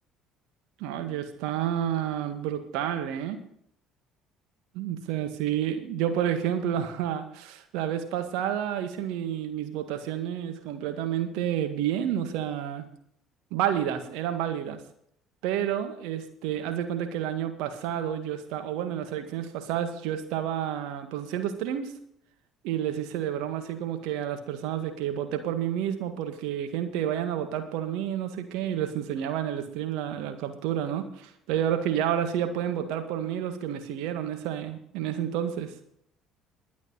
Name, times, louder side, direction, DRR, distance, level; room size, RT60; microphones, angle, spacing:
voice 1, 0.8-3.4 4.7-12.9 13.5-14.8 15.4-21.9 22.6-35.7, right 10 dB, 65° right, 7 dB, 1.9 m, -30 dB
22.0 x 8.5 x 4.2 m, 0.70 s
figure-of-eight pair, 55°, 0 cm